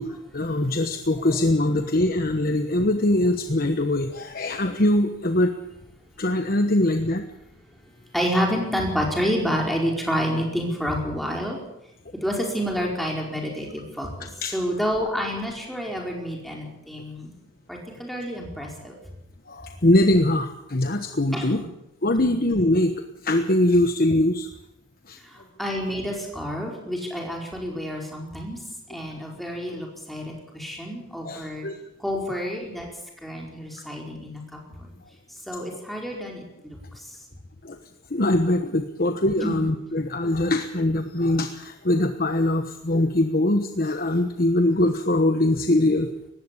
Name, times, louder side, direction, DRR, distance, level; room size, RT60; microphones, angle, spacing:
voice 1, 0.0-5.5 6.2-7.2 14.4-14.6 18.6-18.7 19.5-21.7 22.0-22.9 23.2-24.5 25.1-25.2 31.2-31.8 37.6-37.8 38.1-46.1, left 1 dB, 45° left, 7 dB, 1.2 m, -22 dB
voice 2, 8.1-11.6 12.2-14.1 14.5-17.3 17.7-18.9 21.3-21.7 22.2-22.3 25.6-28.6 28.9-31.7 32.0-32.9 33.2-34.4 34.8-34.9 35.5-36.8 39.4-39.6, equal, ahead, -1 dB, 4.8 m, -28 dB
19.5 x 16.0 x 8.5 m, 0.84 s
head